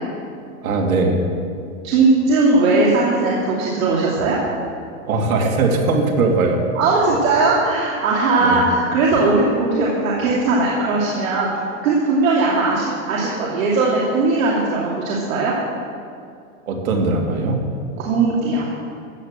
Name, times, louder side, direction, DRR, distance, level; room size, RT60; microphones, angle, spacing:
voice 1, 0.6-1.2 5.1-6.6 8.4-8.6 16.7-17.6, right 3 dB, 85° right, 1 dB, 2.8 m, -19 dB
voice 2, 1.8-4.4 6.7-11.5 11.8-15.5 18.0-18.7, right 3 dB, 70° right, -5 dB, 2.9 m, -18 dB
14.5 x 8.5 x 7.5 m, 2.4 s
supercardioid pair, 150°, 41 cm